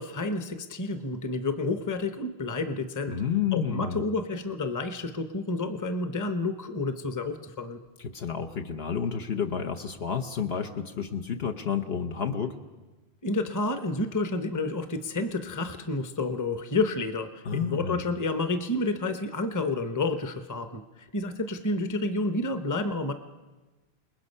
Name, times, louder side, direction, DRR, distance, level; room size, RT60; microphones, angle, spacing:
voice 1, 0.0-3.2 3.5-7.8 13.2-23.1, left 2 dB, 20° left, 8 dB, 0.9 m, -30 dB
voice 2, 3.1-4.0 8.0-12.6 17.4-18.0, left 7 dB, 70° left, 5 dB, 1.1 m, -30 dB
28.5 x 20.0 x 5.5 m, 1.2 s
omnidirectional pair, 1.1 m